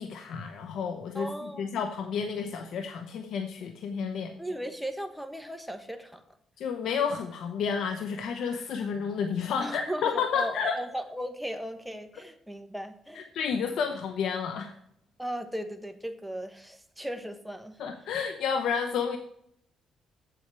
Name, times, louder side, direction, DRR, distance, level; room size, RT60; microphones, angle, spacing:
voice 1, 0.0-4.3 6.6-10.8 13.1-14.8 17.8-19.2, left 6 dB, 75° left, 6 dB, 0.9 m, -31 dB
voice 2, 1.1-1.7 4.4-6.4 9.6-13.3 15.2-17.8, right 1 dB, ahead, 7 dB, 1.2 m, -37 dB
8.1 x 7.7 x 4.6 m, 0.70 s
cardioid pair, 90°, 0 cm